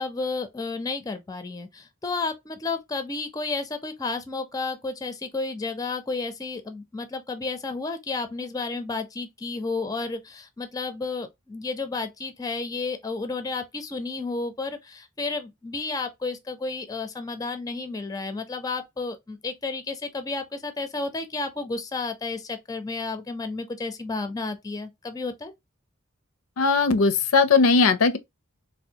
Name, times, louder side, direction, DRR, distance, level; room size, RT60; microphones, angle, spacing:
voice 1, 0.0-25.5, left 3 dB, 15° left, 0.4 m, -32 dB
voice 2, 26.6-28.2, left 4 dB, 75° left, 0.5 m, -19 dB
3.4 x 2.2 x 2.8 m
head